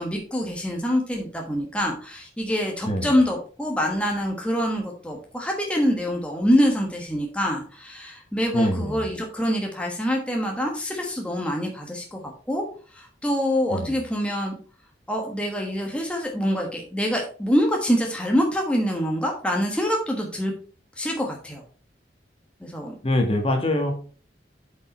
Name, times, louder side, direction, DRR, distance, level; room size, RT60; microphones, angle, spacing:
voice 1, 0.0-12.2 12.5-12.6 12.9-14.6 15.1-20.5 21.0-21.6 22.6-22.9, equal, 5° left, 0 dB, 1.3 m, -25 dB
voice 2, 8.5-9.0 13.7-13.9 23.0-23.9, left 1 dB, 35° left, 4 dB, 1.7 m, -24 dB
8.0 x 5.5 x 4.5 m, 0.41 s
head